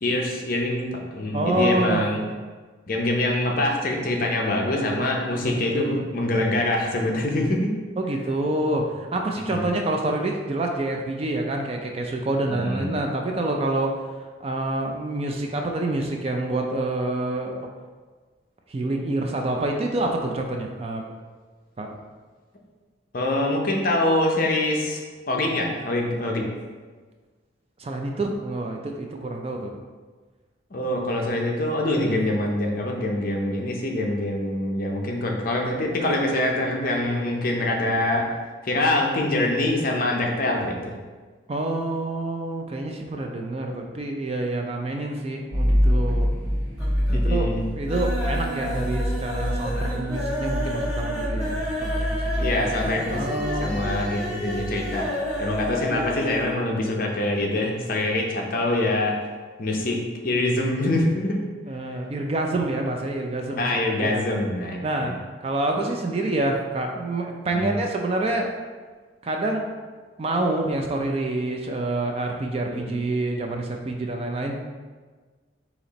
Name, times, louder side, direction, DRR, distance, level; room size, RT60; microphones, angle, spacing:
voice 1, 0.0-2.2 2.9-7.7 9.4-9.7 12.5-12.9 23.1-25.0 25.3-26.5 30.7-38.3 38.6-40.9 47.1-47.6 52.4-55.1 55.4-59.1 59.6-61.4 63.6-65.2 67.5-67.8 72.7-73.0, left 1 dB, 45° left, 0 dB, 0.6 m, -25 dB
voice 2, 1.3-2.0 5.5-6.1 8.0-14.1 14.4-17.5 18.7-21.0 21.8-22.0 27.8-29.8 32.0-32.2 41.5-46.3 47.1-47.5 47.8-51.5 51.8-52.6 53.1-54.1 59.7-59.8 61.7-64.2 64.8-65.2 65.4-68.5 69.2-69.7 70.2-74.6, right 2 dB, 30° right, 2 dB, 0.3 m, -27 dB
sound 1, 45.5-56.5, equal, 65° right, 1.3 m, -27 dB
sound 2, 45.8-46.4 46.7-47.3 47.6-56.6 56.9-57.0 57.3-57.4, equal, 10° right, 1.2 m, -31 dB
4.2 x 2.9 x 4.0 m, 1.4 s
head